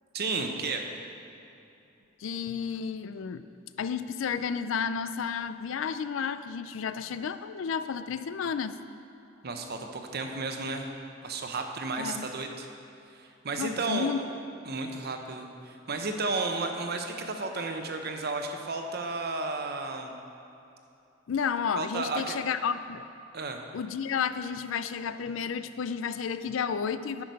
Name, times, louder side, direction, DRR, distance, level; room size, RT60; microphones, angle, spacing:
voice 1, 0.1-0.8 9.4-10.9 11.2-12.7 13.1-14.1 14.7-20.1 21.8-22.4 23.3-23.6, right 3 dB, 55° right, 4 dB, 0.8 m, -33 dB
voice 2, 2.2-3.4 3.8-8.8 12.0-12.3 13.6-14.2 21.3-23.0 23.7-27.2, left 6 dB, 75° left, 12 dB, 0.4 m, -32 dB
10.5 x 5.9 x 5.3 m, 2.8 s
head